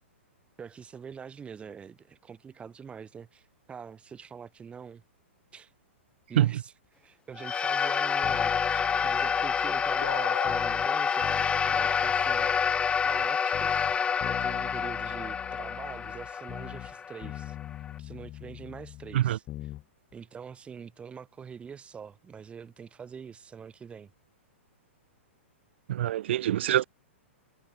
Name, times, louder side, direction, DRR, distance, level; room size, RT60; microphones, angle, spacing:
voice 1, 0.6-5.0 5.5-5.7 6.3-12.8 13.0-13.7 14.2-17.6 18.0-19.4 20.1-24.1, right 6 dB, 15° right, 4.0 m, -44 dB
sound 1, 7.4-17.9, left 6 dB, 15° left, 1.8 m, -28 dB
sound 2, 8.2-10.9 11.2-13.3 13.5-17.0 17.2-19.8 20.1-20.2, left 15 dB, 30° left, 2.3 m, -43 dB
sound 3, 10.0-10.6, left 9 dB, 70° left, 1.6 m, -34 dB
voice 2, 25.9-26.8, right 12 dB, 65° right, 0.4 m, -25 dB
hypercardioid pair, 120°, 7 cm